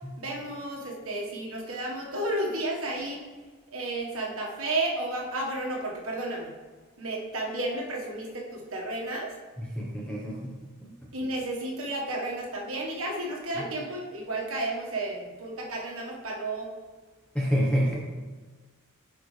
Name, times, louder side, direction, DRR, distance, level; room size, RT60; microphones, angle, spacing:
voice 1, 0.2-3.2 3.7-6.5 7.0-9.3 11.1-16.7, right 2 dB, 70° right, -2 dB, 1.5 m, -32 dB
voice 2, 9.6-10.5 17.3-17.9, equal, 5° left, -4 dB, 0.9 m, -27 dB
10.0 x 4.5 x 3.3 m, 1.3 s
head